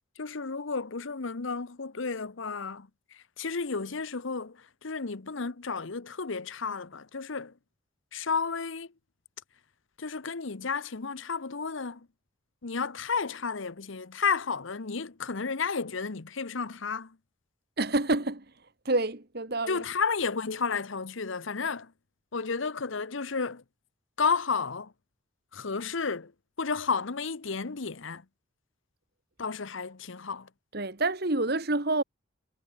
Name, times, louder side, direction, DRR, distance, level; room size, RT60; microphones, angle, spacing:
voice 1, 0.2-7.5 8.1-8.9 10.0-12.1 12.6-17.2 19.7-21.9 22.3-23.6 24.2-24.9 25.5-26.3 26.6-28.2 29.4-30.5, left 5 dB, 70° left, 0.9 m, -32 dB
voice 2, 17.8-18.5 18.9-19.8 30.7-32.0, right 2 dB, 50° right, 1.8 m, -28 dB
head